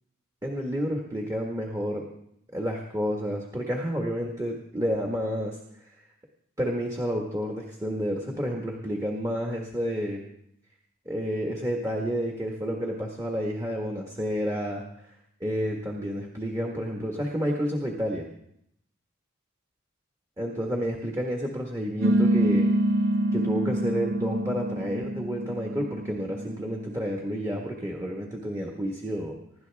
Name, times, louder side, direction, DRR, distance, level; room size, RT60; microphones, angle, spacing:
voice 1, 0.4-2.1 2.5-5.6 6.6-10.2 11.0-14.8 15.4-18.3 20.4-22.7 23.3-29.4, equal, 15° right, 0 dB, 1.6 m, -30 dB
sound 1, 22.0-27.0, right 1 dB, 60° right, 0.7 m, -26 dB
25.0 x 12.0 x 3.5 m, 0.74 s
head